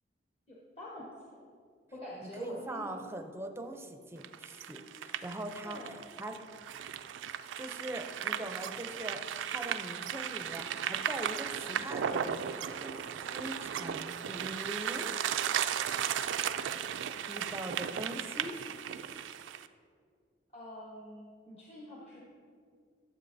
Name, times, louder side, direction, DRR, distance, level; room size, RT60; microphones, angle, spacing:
voice 1, 0.5-1.1 1.9-3.0 5.6-5.9 20.5-22.2, left 1 dB, 35° left, -6 dB, 1.1 m, -45 dB
voice 2, 2.2-6.4 7.6-9.2 9.5-13.0 13.2-15.1 17.3-18.6, right 1 dB, 15° right, 5 dB, 0.5 m, -42 dB
sound 1, 4.2-19.7, right 9 dB, 80° right, 0.3 m, -36 dB
12.5 x 7.3 x 2.6 m, 2.2 s
head